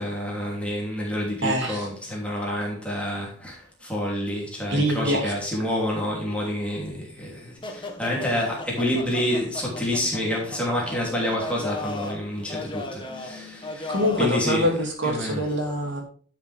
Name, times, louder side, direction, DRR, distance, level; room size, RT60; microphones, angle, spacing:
voice 1, 0.0-14.7 15.0-15.4, left 1 dB, 5° left, 3.0 m, -28 dB
voice 2, 1.4-1.9 4.7-5.7 13.9-16.0, equal, 55° right, 2.6 m, -25 dB
sound 1, 7.6-14.4, left 2 dB, 20° left, 1.3 m, -36 dB
11.5 x 7.2 x 3.5 m
head